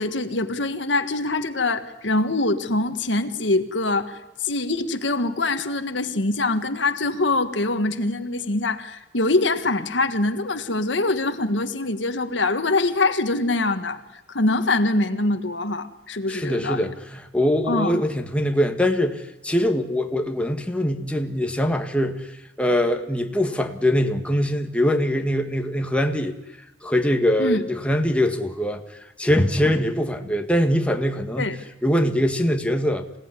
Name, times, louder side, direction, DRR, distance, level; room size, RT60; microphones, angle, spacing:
voice 1, 0.0-14.0 14.3-16.9 17.7-18.0 27.4-27.6 31.4-31.6, left 2 dB, 80° left, 9 dB, 1.6 m, -24 dB
voice 2, 16.3-22.3 22.6-26.4 26.8-31.5 31.8-33.1, equal, 5° left, 4 dB, 1.8 m, -23 dB
27.0 x 18.0 x 9.9 m, 0.99 s
head